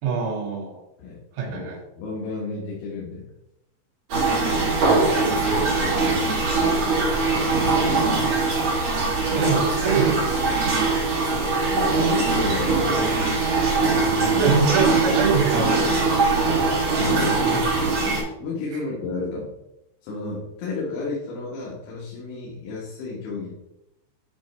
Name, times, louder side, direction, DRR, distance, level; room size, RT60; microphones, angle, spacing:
voice 1, 0.0-0.8 1.3-1.8 4.9-5.7 9.3-10.8 14.4-16.7, right 5 dB, 75° right, -2 dB, 4.0 m, -25 dB
voice 2, 1.5-3.3 5.5-7.0 9.3-9.5 11.7-13.0 14.3-14.6 16.9-19.5 20.0-23.5, left 3 dB, 80° left, -4 dB, 3.8 m, -32 dB
sound 1, 4.1-18.2, right 3 dB, 45° right, 3.2 m, -21 dB
9.1 x 5.2 x 3.1 m, 0.88 s
omnidirectional pair, 5.5 m